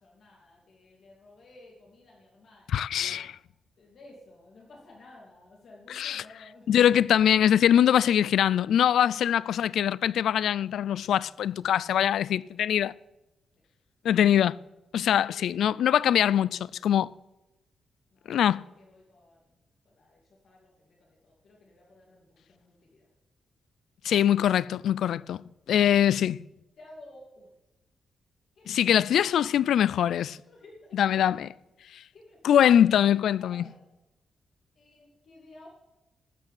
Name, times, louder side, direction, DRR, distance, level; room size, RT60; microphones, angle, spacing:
voice 1, 0.0-3.3 3.8-6.7 9.0-9.2 15.1-15.6 18.1-19.5 19.8-23.1 26.8-27.5 28.5-29.0 30.3-31.2 32.1-32.4 33.4-33.8 34.7-35.7, left 2 dB, 55° left, 2.8 m, -54 dB
voice 2, 2.7-3.3 5.9-6.2 6.7-12.9 14.0-14.6 14.9-17.1 18.3-18.6 24.0-26.4 28.7-30.4 30.9-31.5 31.9-32.0 32.4-33.6, left 10 dB, 85° left, 0.3 m, -23 dB
13.0 x 6.6 x 8.6 m
wide cardioid pair, 150°, 0 cm